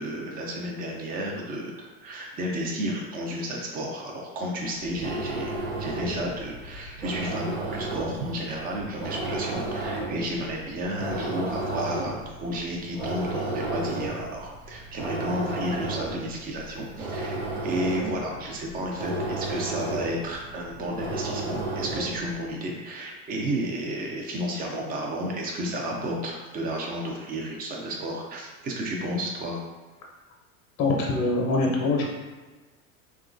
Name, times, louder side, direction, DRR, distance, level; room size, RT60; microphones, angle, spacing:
voice 1, 0.0-29.6, equal, 20° right, 0 dB, 0.4 m, -32 dB
sound 1, 4.8-22.3, right 2 dB, 70° right, 0.8 m, -33 dB
voice 2, 30.8-32.2, left 2 dB, 35° left, 0 dB, 0.7 m, -24 dB
2.9 x 2.3 x 2.5 m, 1.3 s
hypercardioid pair, 95°, 43 cm